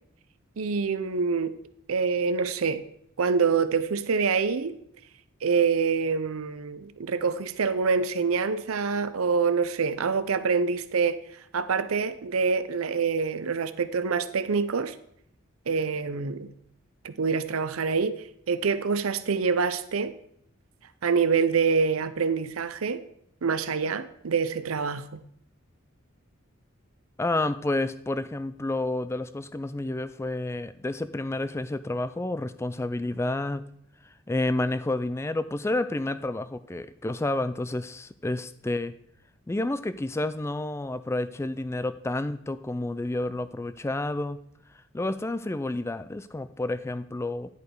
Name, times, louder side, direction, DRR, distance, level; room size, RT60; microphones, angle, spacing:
voice 1, 0.6-1.5 1.9-2.8 3.2-4.8 5.4-11.2 11.5-14.9 15.7-16.5 17.0-18.2 18.5-20.1 21.0-23.0 23.4-25.2, right 5 dB, 85° right, 13 dB, 0.6 m, -26 dB
voice 2, 27.2-33.6 34.3-38.9 39.5-44.4 44.9-47.5, left 2 dB, 15° left, 14 dB, 0.3 m, -30 dB
10.5 x 5.1 x 4.7 m, 0.70 s
head